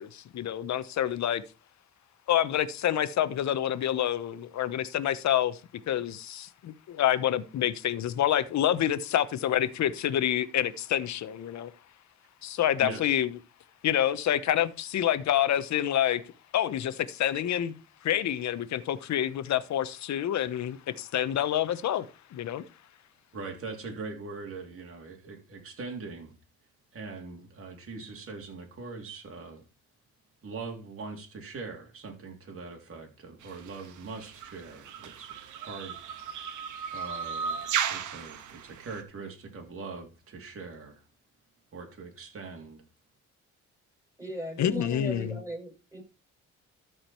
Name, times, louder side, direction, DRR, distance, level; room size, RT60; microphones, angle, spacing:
voice 1, 0.0-1.4 2.3-5.6 5.9-11.7 12.4-13.3 13.8-16.2 16.5-17.7 18.0-22.6 44.6-45.4, left 11 dB, 65° left, 1.1 m, -27 dB
voice 2, 23.3-26.3 26.9-29.6 30.4-36.0 36.9-41.0 41.7-42.8, right 4 dB, 45° right, 3.4 m, -42 dB
sound 1, 33.4-39.0, right 7 dB, 80° right, 1.6 m, -35 dB
voice 3, 44.2-46.0, equal, 10° right, 6.5 m, -37 dB
13.5 x 5.1 x 4.6 m
cardioid pair, 90°, 30 cm